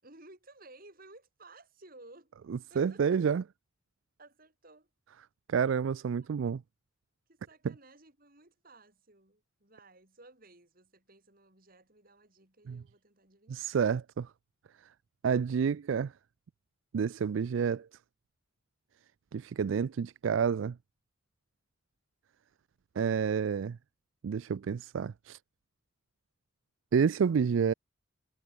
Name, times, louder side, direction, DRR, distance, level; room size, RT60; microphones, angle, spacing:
voice 1, 0.0-2.3 2.7-3.2 4.2-4.9 7.3-13.7, right 2 dB, 45° right, 6.4 m, -57 dB
voice 2, 2.5-3.4 5.5-6.6 7.6-7.7 12.7-12.8 13.5-14.3 15.2-16.1 16.9-17.9 19.3-20.8 23.0-23.8 24.2-25.4 26.9-27.7, right 6 dB, 70° right, 0.4 m, -29 dB
head